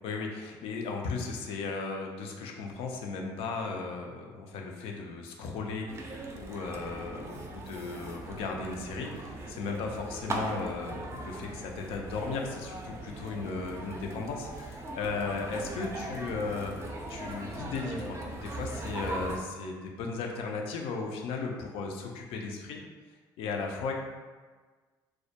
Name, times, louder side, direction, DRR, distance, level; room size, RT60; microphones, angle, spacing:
voice 1, 0.0-22.8 23.4-23.9, left 4 dB, 70° left, 1 dB, 0.4 m, -36 dB
sound 1, 5.9-19.4, right 2 dB, 25° right, 0.4 m, -40 dB
2.2 x 2.0 x 2.7 m, 1.4 s
hypercardioid pair, 65°, 10 cm